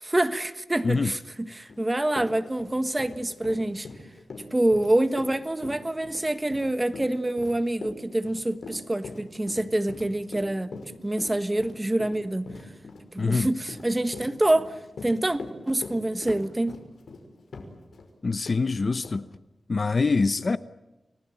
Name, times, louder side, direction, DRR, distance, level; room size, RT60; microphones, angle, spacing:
voice 1, 0.0-3.9 4.5-10.7 11.0-12.5 13.1-16.7, right 1 dB, 15° right, 1.4 m, -26 dB
Run, 1.7-1.8 2.1-18.1 18.5-18.6 19.0-19.2, left 3 dB, 80° left, 5.7 m, -41 dB
voice 2, 13.2-13.5 18.2-19.3 19.7-20.6, left 4 dB, 45° left, 0.8 m, -24 dB
30.0 x 19.5 x 9.1 m
wide cardioid pair, 130°, 0 cm